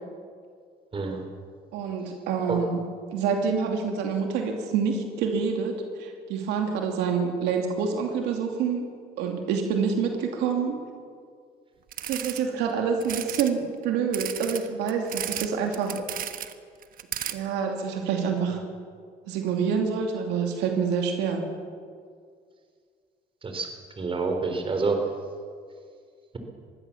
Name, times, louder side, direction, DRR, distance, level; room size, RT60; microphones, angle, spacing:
voice 1, 0.9-1.2 2.5-2.6 23.4-23.7 24.0-25.0, right 4 dB, 30° right, 4 dB, 3.9 m, -27 dB
voice 2, 1.7-2.8 3.1-8.9 9.2-10.8 12.1-16.0 17.3-18.6 19.3-21.5, right 6 dB, 90° right, 3 dB, 2.7 m, -27 dB
sound 1, 11.9-12.4 13.0-13.5 14.1-15.5 15.7-16.5 16.8-17.3, right 10 dB, 55° right, 1.3 m, -33 dB
22.5 x 16.0 x 7.2 m, 2.1 s
cardioid pair, 110°, 17 cm